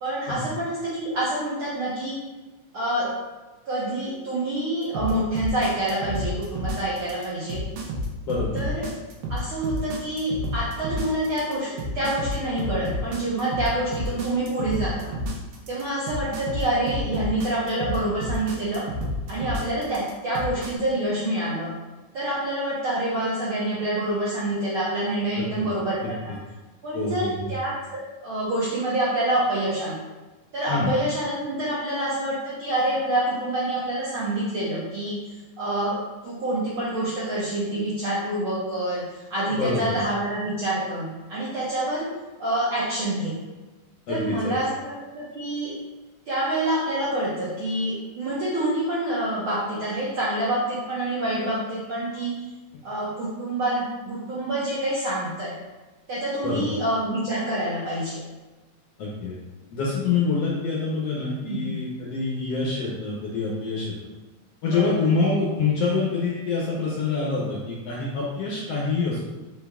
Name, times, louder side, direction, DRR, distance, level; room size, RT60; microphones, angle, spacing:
voice 1, 0.0-2.1 2.7-3.1 3.7-7.6 8.5-8.9 9.3-15.1 15.7-18.8 19.3-21.7 22.1-26.3 26.8-30.0 30.5-36.0 36.2-42.1 42.4-43.3 44.1-45.7 46.3-52.3 52.8-55.5 56.1-58.2 61.4-61.8 64.6-65.1, right 1 dB, 70° right, -9 dB, 1.3 m, -27 dB
sound 1, 4.9-20.7, equal, 90° right, 2.3 m, -30 dB
voice 2, 8.2-8.7 25.3-25.7 26.0-26.1 26.9-27.5 30.7-30.9 39.5-40.0 44.1-44.5 56.4-56.7 59.0-59.4 59.7-63.9 64.6-69.2, left 4 dB, 70° left, -5 dB, 1.6 m, -26 dB
5.3 x 4.3 x 2.3 m, 1.2 s
omnidirectional pair, 3.5 m